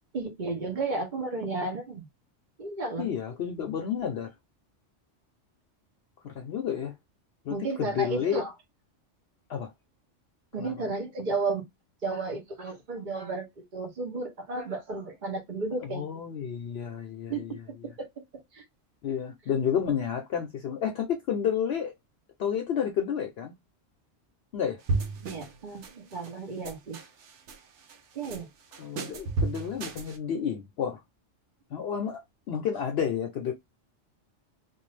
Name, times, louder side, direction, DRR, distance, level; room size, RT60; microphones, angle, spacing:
voice 1, 0.1-2.0 2.6-3.1 7.5-8.5 10.5-11.6 12.0-13.5 13.7-16.1 17.3-18.1 18.5-18.6 25.2-27.0 28.1-28.5, right 3 dB, 45° right, 0.8 m, -33 dB
voice 2, 3.0-4.3 6.2-6.9 7.4-8.4 9.5-9.7 10.6-10.8 15.8-17.6 19.0-21.9 22.4-23.5 24.5-24.8 28.8-31.0 31.7-32.2 32.5-33.5, left 8 dB, 60° left, 0.8 m, -30 dB
sound 1, 24.9-25.6 25.8-26.3 26.6-27.6 27.9-28.4 28.7-30.2, right 3 dB, 75° right, 0.9 m, -32 dB
2.6 x 2.3 x 3.1 m
omnidirectional pair, 1.3 m